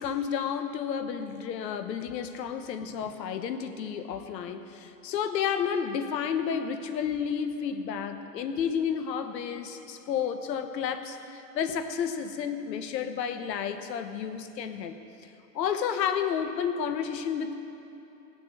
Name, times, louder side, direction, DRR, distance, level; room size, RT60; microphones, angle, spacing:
voice 1, 0.0-15.3 15.5-17.6, left 7 dB, 85° left, 8 dB, 1.2 m, -31 dB
19.0 x 6.8 x 7.7 m, 2.9 s
supercardioid pair, 165°, 49 cm